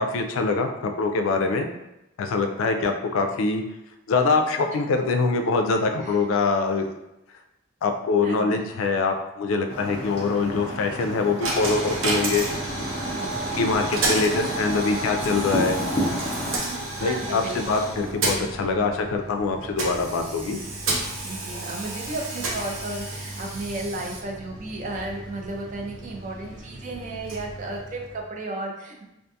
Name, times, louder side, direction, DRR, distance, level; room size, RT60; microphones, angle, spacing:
voice 1, 0.0-1.7 2.2-3.6 4.1-6.9 7.8-12.4 13.6-15.8 17.0-20.6, left 4 dB, 90° left, 5 dB, 0.3 m, -24 dB
voice 2, 8.2-8.7 13.0-13.6 16.4-17.8 21.2-29.0, right 2 dB, 40° right, 0 dB, 0.4 m, -34 dB
sound 1, 9.7-16.6, equal, 30° left, 0.5 m, -31 dB
Coin (dropping), 11.4-28.3, right 2 dB, 80° right, 0.6 m, -31 dB
2.4 x 2.3 x 2.7 m, 0.89 s
head